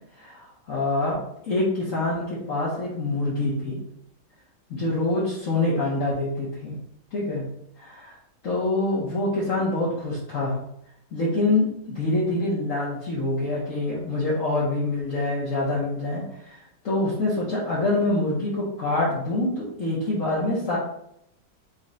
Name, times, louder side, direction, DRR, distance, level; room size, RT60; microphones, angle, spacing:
voice 1, 0.2-3.8 4.7-6.7 7.1-7.4 7.8-8.2 8.4-10.6 11.1-20.8, left 2 dB, 50° left, -7 dB, 1.3 m, -26 dB
5.3 x 2.4 x 3.9 m, 0.76 s
omnidirectional pair, 2.0 m